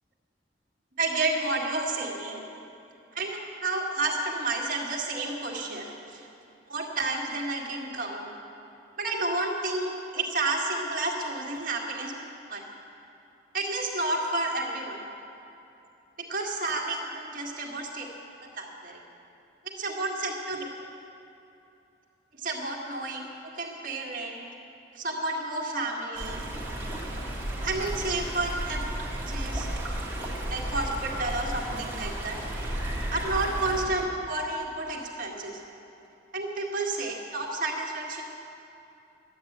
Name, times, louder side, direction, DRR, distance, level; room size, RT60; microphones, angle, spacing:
voice 1, 1.0-2.5 3.1-6.3 6.7-8.3 9.0-12.2 12.5-12.6 13.5-15.0 16.2-18.1 18.6-19.0 19.8-20.7 22.3-23.3 23.6-24.5 24.9-26.4 27.6-28.8 29.3-29.7 30.5-32.4 33.1-35.6 36.3-38.2, right 2 dB, 45° right, -1 dB, 1.8 m, -31 dB
Stream, 26.1-33.8, right 1 dB, 10° right, 1.8 m, -33 dB
12.0 x 10.0 x 8.0 m, 2.8 s
head